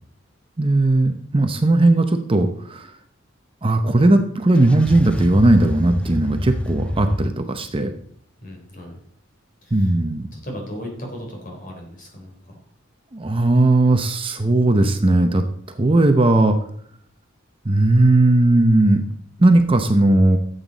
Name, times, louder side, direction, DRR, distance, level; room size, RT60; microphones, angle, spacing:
voice 1, 0.6-2.9 3.6-7.9 9.7-10.3 13.1-16.6 17.6-19.0 19.4-20.4, right 2 dB, 25° right, 7 dB, 0.7 m, -17 dB
sound 1, 4.6-7.3, left 1 dB, 5° left, 0.4 m, -27 dB
voice 2, 8.4-9.0 9.6-9.9 10.3-12.6, equal, 40° left, 1 dB, 3.5 m, -36 dB
13.0 x 8.1 x 4.1 m, 0.63 s
head